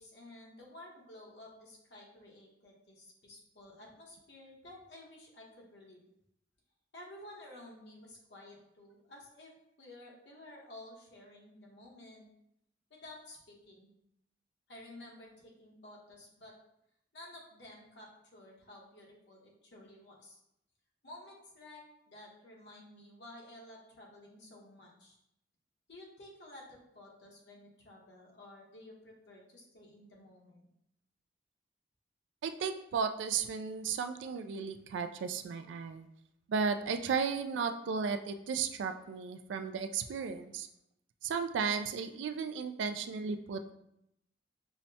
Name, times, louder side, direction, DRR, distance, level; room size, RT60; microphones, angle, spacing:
voice 1, 0.0-6.0 6.9-9.5 9.8-12.3 12.9-13.9 14.7-16.5 17.1-20.4 21.0-25.2 25.9-30.7, left 1 dB, 70° left, -3 dB, 1.0 m, -53 dB
voice 2, 32.4-36.1 36.5-40.7 41.2-43.7, right 6 dB, 90° right, 8 dB, 0.3 m, -34 dB
5.6 x 2.1 x 2.7 m, 0.79 s
head